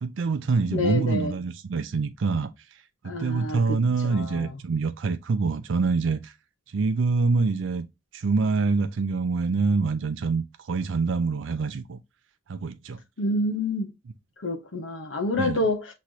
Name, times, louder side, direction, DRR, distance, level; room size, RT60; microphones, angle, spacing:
voice 1, 0.0-2.5 3.0-6.3 6.7-7.8 8.1-12.0 12.5-13.0 15.4-15.6, right 4 dB, 85° right, 0.4 m, -25 dB
voice 2, 0.7-1.3 3.0-4.6 13.2-13.9 14.4-15.9, left 1 dB, 90° left, 0.8 m, -28 dB
6.1 x 3.1 x 2.7 m
head